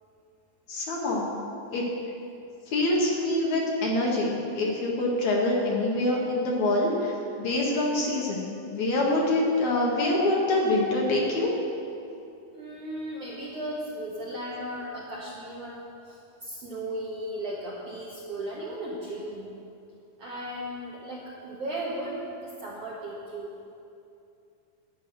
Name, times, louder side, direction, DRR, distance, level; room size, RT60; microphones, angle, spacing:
voice 1, 0.7-1.3 1.7-1.8 2.7-11.5, left 1 dB, 60° left, -3 dB, 2.4 m, -25 dB
voice 2, 12.5-19.5 20.2-23.5, right 1 dB, 60° right, -5 dB, 1.6 m, -36 dB
11.0 x 8.9 x 6.3 m, 2.7 s
omnidirectional pair, 4.2 m